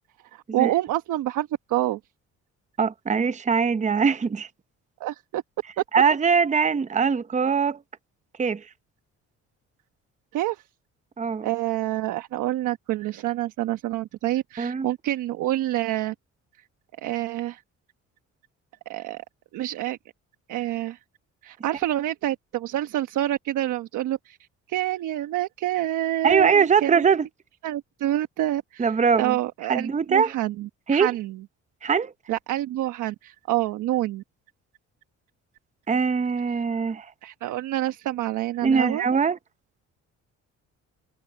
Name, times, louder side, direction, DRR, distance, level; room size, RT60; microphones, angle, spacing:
voice 1, 0.3-2.0 5.0-5.4 10.3-10.6 11.4-16.1 17.0-17.6 18.9-19.2 19.5-20.0 20.5-21.0 21.4-24.4 24.7-27.0 27.6-31.4 32.3-34.2 37.2-39.1, right 14 dB, 85° right, 1.1 m, -27 dB
voice 2, 2.8-4.5 5.9-7.8 8.4-8.6 11.2-11.5 14.6-14.9 26.2-27.3 28.8-29.4 29.7-30.3 30.9-31.1 31.8-32.1 35.9-37.1 38.6-39.4, right 6 dB, 25° right, 0.7 m, -22 dB
cardioid pair, 90°, 30 cm